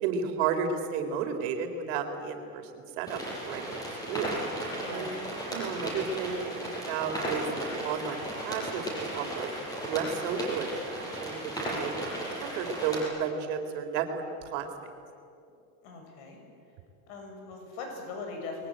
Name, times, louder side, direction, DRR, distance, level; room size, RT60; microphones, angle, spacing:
voice 1, 0.0-3.8 4.1-4.4 4.9-5.1 5.5-9.5 9.9-11.9 12.4-14.2 14.5-14.7, right 6 dB, 55° right, 5 dB, 3.9 m, -33 dB
sound 1, 3.1-13.0, right 1 dB, 10° left, 7.4 m, -35 dB
voice 2, 4.8-5.2 15.8-16.4 17.1-18.7, left 4 dB, 55° left, 3 dB, 7.4 m, -40 dB
29.5 x 22.0 x 8.9 m, 2.6 s
supercardioid pair, 160°, 43 cm